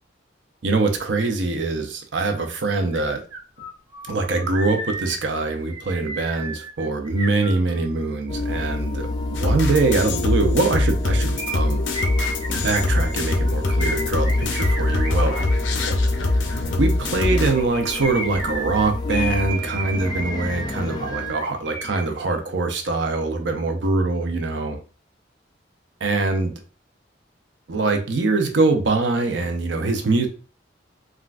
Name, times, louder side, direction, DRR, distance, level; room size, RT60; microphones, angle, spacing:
voice 1, 0.6-3.2 4.1-11.8 12.5-15.3 16.8-24.8 26.0-26.5 27.7-30.3, right 3 dB, 75° right, 5 dB, 0.6 m, -23 dB
sound 1, 2.9-3.0 3.3-8.1 11.4-15.6 17.4-22.0 22.3-22.4, right 1 dB, 25° right, 1.0 m, -33 dB
sound 2, 8.3-21.3, left 3 dB, 25° left, 0.3 m, -29 dB
sound 3, 9.3-17.5, left 2 dB, 90° left, 0.6 m, -23 dB
3.7 x 2.3 x 2.4 m, 0.36 s
head